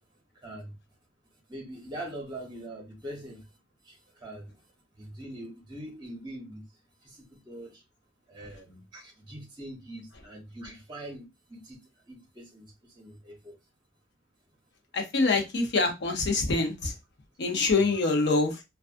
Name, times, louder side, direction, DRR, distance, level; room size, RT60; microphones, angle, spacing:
voice 1, 0.4-0.7 1.5-3.4 3.9-4.0 4.2-4.5 5.0-6.6 7.5-7.7 8.3-11.8 12.1-12.6 13.0-13.5, right 1 dB, 25° right, 0.9 m, -42 dB
voice 2, 14.9-16.9 17.4-18.6, left 3 dB, 60° left, 0.6 m, -25 dB
2.4 x 2.3 x 2.5 m
head